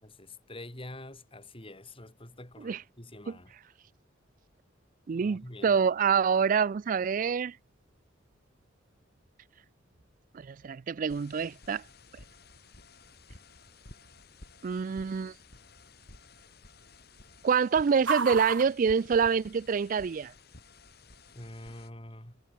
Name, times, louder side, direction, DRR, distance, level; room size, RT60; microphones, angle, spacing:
voice 1, 0.0-3.5 5.1-5.8 21.3-22.4, left 1 dB, 30° left, 4.8 m, -46 dB
sound 1, 5.0-19.9, right 5 dB, 80° right, 2.1 m, -43 dB
voice 2, 5.1-7.5 10.4-11.8 14.6-15.3 17.4-20.3, right 6 dB, 45° right, 0.3 m, -26 dB
sound 2, 11.1-21.9, left 3 dB, 55° left, 3.9 m, -54 dB
head